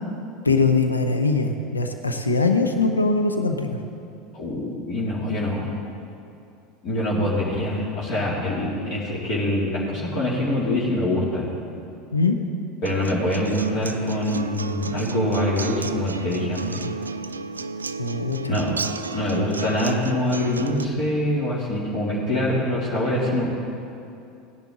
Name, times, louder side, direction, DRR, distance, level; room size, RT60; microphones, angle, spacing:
voice 1, 0.4-3.8 12.1-12.4 18.0-18.6, left 3 dB, 90° left, 6 dB, 0.7 m, -22 dB
voice 2, 4.3-5.7 6.8-11.5 12.8-16.8 18.5-18.8 19.1-23.5, left 1 dB, 50° left, -6 dB, 2.5 m, -24 dB
Acoustic guitar, 12.9-20.8, right 4 dB, 85° right, 0.3 m, -32 dB
16.5 x 10.5 x 3.7 m, 2.6 s
figure-of-eight pair, 75°, 0 cm